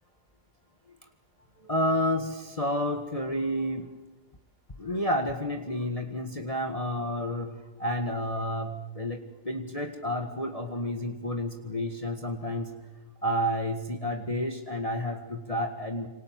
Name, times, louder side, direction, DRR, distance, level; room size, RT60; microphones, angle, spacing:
voice 1, 1.6-3.9 4.8-12.8 13.2-16.1, equal, 25° left, 4 dB, 1.8 m, -30 dB
27.5 x 26.0 x 7.6 m, 1.1 s
omnidirectional pair, 1.4 m